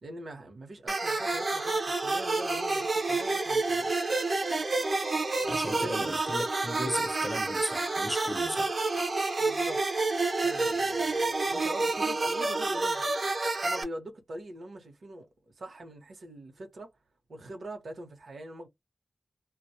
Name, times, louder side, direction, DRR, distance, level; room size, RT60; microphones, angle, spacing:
voice 1, 0.0-3.9 5.4-6.1 8.4-8.7 9.4-9.8 10.4-13.1 13.6-15.3 15.6-16.9 17.3-18.7, right 1 dB, 75° right, 0.9 m, -42 dB
sound 1, 0.9-13.8, right 3 dB, 50° right, 0.6 m, -29 dB
voice 2, 5.5-8.8, equal, 5° left, 0.7 m, -35 dB
2.2 x 2.0 x 2.7 m
wide cardioid pair, 120°, 0 cm